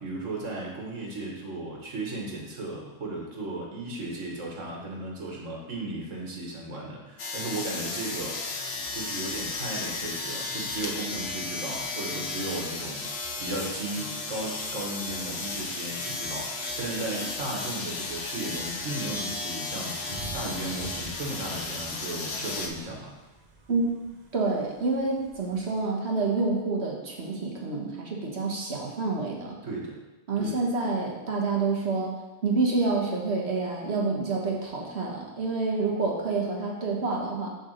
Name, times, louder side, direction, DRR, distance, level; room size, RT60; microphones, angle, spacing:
voice 1, 0.0-8.4 8.9-23.2 29.6-30.0 30.4-30.6, right 2 dB, 80° right, -2 dB, 1.9 m, -35 dB
sound 1, 7.2-22.7, left 3 dB, 60° left, 1.1 m, -34 dB
sound 2, 8.2-22.8, left 2 dB, 35° left, 1.5 m, -47 dB
Thunder / Rain, 20.1-25.8, right 3 dB, 40° right, 0.8 m, -46 dB
voice 2, 24.3-29.6 30.3-32.1 32.4-37.5, right 3 dB, 60° right, -1 dB, 1.6 m, -28 dB
6.9 x 4.1 x 6.5 m, 1.1 s
omnidirectional pair, 1.3 m